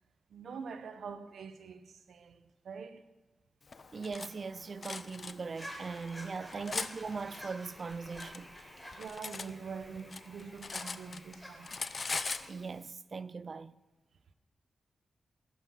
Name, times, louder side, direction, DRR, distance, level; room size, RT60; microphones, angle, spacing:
voice 1, 0.3-3.1 6.4-6.6 8.9-11.8, right 5 dB, 75° right, 0.9 m, -45 dB
sound 1, 3.7-9.1, left 3 dB, 65° left, 3.1 m, -59 dB
Cutlery silverware, 3.7-4.3 4.8-5.3 6.0-6.9 7.8-9.5 9.8-11.4 11.6-12.5, left 4 dB, 40° left, 0.6 m, -39 dB
voice 2, 3.9-8.5 12.5-13.7, right 4 dB, 45° right, 0.4 m, -40 dB
sound 2, 5.5-12.5, equal, ahead, 4.2 m, -50 dB
15.0 x 11.5 x 5.7 m
wide cardioid pair, 105°, 0 cm